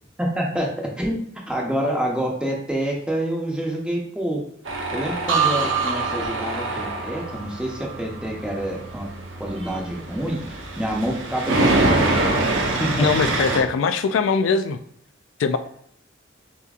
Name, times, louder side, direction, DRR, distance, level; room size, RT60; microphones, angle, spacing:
voice 1, 0.2-1.2 1.5-4.4 4.9-9.1 9.4-12.1 12.8-13.1, right 1 dB, 5° right, -2 dB, 0.8 m, -27 dB
Tools, 4.7-13.6, right 2 dB, 90° right, 0.9 m, -25 dB
sound 1, 5.3-9.1 9.5-9.9, right 6 dB, 70° right, 0.5 m, -28 dB
voice 2, 13.0-14.8 15.4-15.6, left 5 dB, 85° left, 10 dB, 0.3 m, -21 dB
7.0 x 2.8 x 2.4 m, 0.66 s
head